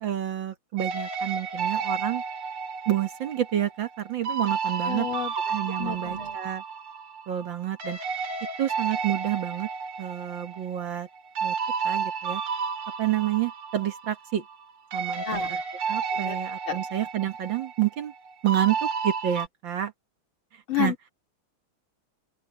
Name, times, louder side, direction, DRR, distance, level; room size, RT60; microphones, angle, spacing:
voice 1, 0.0-2.2 2.9-5.1 5.5-6.6 7.3-8.0 8.6-9.7 10.0-11.1 11.4-11.6 11.8-12.4 13.0-14.4 14.9-15.4 15.9-18.1 18.4-19.9 20.8-20.9, right 12 dB, 60° right, 2.0 m, -29 dB
sound 1, 0.8-7.5 7.8-14.6 14.9-19.5, right 5 dB, 85° right, 2.9 m, -32 dB
voice 2, 4.8-5.3 5.6-6.4 15.2-15.6 16.1-16.4 16.7-16.8 20.7-21.1, left 8 dB, 70° left, 4.9 m, -31 dB
open air
omnidirectional pair, 2.4 m